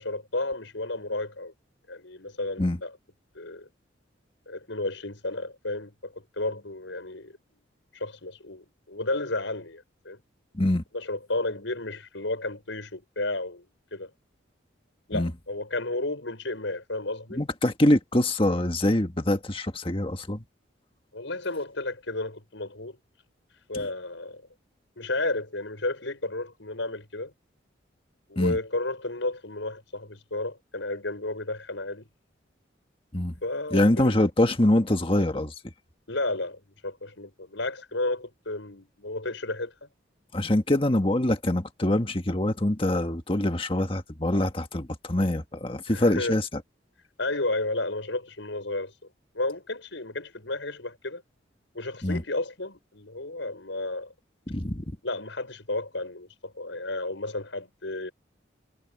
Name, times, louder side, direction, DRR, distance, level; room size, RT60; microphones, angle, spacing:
voice 1, 0.0-1.5 1.9-2.9 3.3-3.7 4.5-7.4 7.9-10.2 10.9-13.6 13.9-14.1 15.1-17.4 21.1-23.0 23.7-24.5 25.0-27.3 28.3-32.1 33.4-34.3 36.1-39.9 45.9-46.4 47.2-48.9 49.3-51.2 51.7-54.1 55.0-58.1, left 2 dB, 75° left, 5.8 m, -32 dB
voice 2, 17.4-20.4 28.3-28.6 33.1-33.3 33.7-35.5 40.3-46.5 52.0-52.2 54.5-54.8, left 1 dB, 25° left, 1.6 m, -24 dB
head